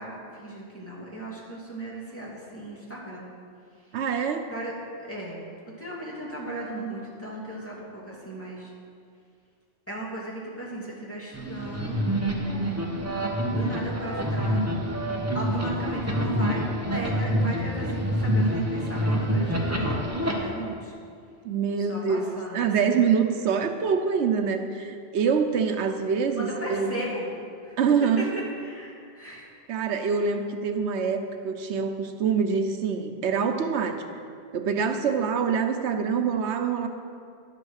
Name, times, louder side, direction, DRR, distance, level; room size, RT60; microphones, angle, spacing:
voice 1, 0.0-3.2 4.5-5.4 5.6-8.7 9.9-12.0 13.5-14.6 15.3-16.6 16.9-20.9 21.8-23.0 26.3-27.3 27.6-27.8 28.2-28.3 28.6-29.5, right 1 dB, 10° left, -6 dB, 2.6 m, -36 dB
voice 2, 3.9-4.4 21.4-26.9 27.8-28.4 29.7-34.0 34.5-36.9, right 6 dB, 85° right, 7 dB, 1.1 m, -25 dB
sound 1, 11.3-20.3, equal, 15° right, 1.2 m, -27 dB
11.0 x 8.1 x 6.5 m, 2.3 s
omnidirectional pair, 1.1 m